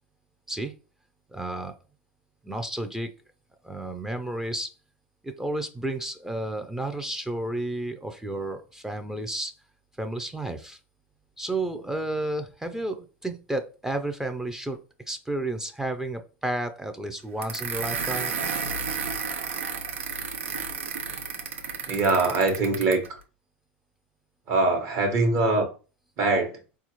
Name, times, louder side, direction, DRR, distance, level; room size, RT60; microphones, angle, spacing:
voice 1, 1.3-1.8 2.4-3.1 3.6-4.7 5.2-9.5 10.0-10.8 11.4-14.8 15.1-18.3, right 1 dB, 5° right, 0.4 m, -31 dB
sound 1, 17.4-23.1, right 5 dB, 85° right, 0.5 m, -32 dB
voice 2, 21.9-23.0 24.5-25.7 26.2-26.6, right 3 dB, 45° right, 1.1 m, -22 dB
4.0 x 2.4 x 2.9 m
hypercardioid pair, 90°, 7 cm